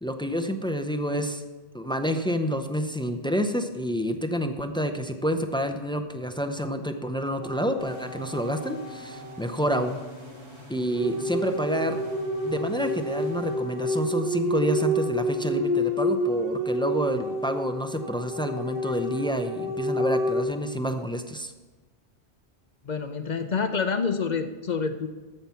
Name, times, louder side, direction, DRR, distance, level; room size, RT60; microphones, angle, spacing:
voice 1, 0.0-1.4 1.7-10.0 10.7-12.0 12.4-21.5, equal, 10° left, 7 dB, 0.3 m, -28 dB
sound 1, 7.4-9.8 11.0-20.4, equal, 60° right, 1.6 m, -29 dB
sound 2, 7.8-14.3, left 1 dB, 25° right, 1.9 m, -45 dB
voice 2, 22.8-25.1, left 5 dB, 50° left, 8 dB, 0.7 m, -27 dB
14.5 x 5.9 x 5.7 m, 1.3 s
omnidirectional pair, 1.1 m